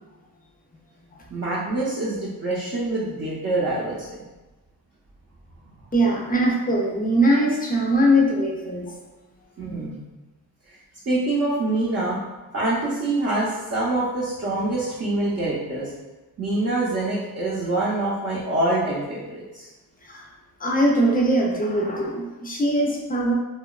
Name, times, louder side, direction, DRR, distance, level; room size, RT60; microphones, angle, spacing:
voice 1, 1.3-4.1 9.6-10.0 11.1-12.2 12.5-15.9 16.4-19.7, right 2 dB, 40° right, -7 dB, 0.5 m, -25 dB
voice 2, 5.9-8.9 20.0-20.3 20.6-23.3, right 1 dB, 25° left, -1 dB, 0.4 m, -21 dB
2.8 x 2.2 x 2.2 m, 1.1 s
wide cardioid pair, 120°, 37 cm